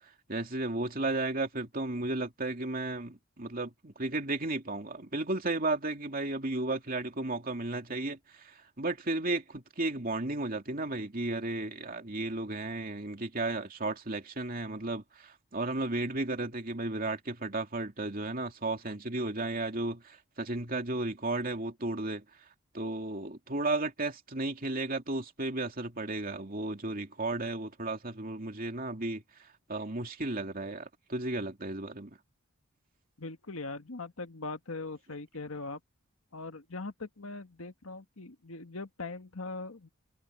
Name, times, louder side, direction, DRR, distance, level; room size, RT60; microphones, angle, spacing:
voice 1, 0.3-22.2 22.7-29.2 29.7-32.2, right 2 dB, 40° right, 2.8 m, -34 dB
voice 2, 33.2-35.8 36.3-39.9, left 3 dB, 75° left, 1.7 m, -41 dB
head